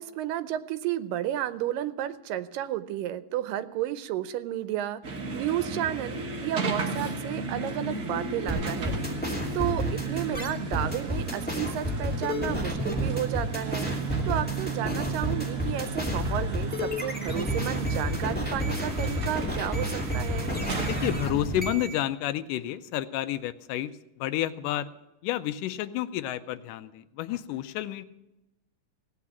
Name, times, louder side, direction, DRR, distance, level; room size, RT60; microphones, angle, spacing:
voice 1, 0.0-9.0 9.5-13.9 14.3-20.5, right 12 dB, 90° right, 13 dB, 2.4 m, -32 dB
sound 1, 5.0-21.2, right 3 dB, 50° right, 1.0 m, -34 dB
sound 2, 8.5-22.0, equal, 5° left, 1.7 m, -31 dB
voice 2, 20.9-23.9 24.2-24.9 25.2-28.1, left 13 dB, 80° left, 13 dB, 2.2 m, -30 dB
17.0 x 8.5 x 7.2 m, 0.94 s
omnidirectional pair, 3.8 m